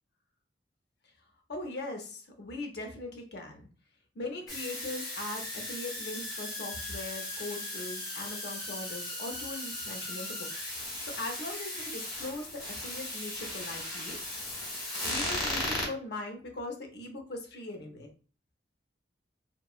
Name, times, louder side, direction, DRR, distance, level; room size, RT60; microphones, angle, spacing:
voice 1, 1.5-3.7 4.1-14.2 15.0-18.1, left 2 dB, 65° left, 3 dB, 0.7 m, -40 dB
sound 1, 4.5-15.9, left 1 dB, 25° left, 1.1 m, -37 dB
2.8 x 2.2 x 2.3 m, 0.39 s
head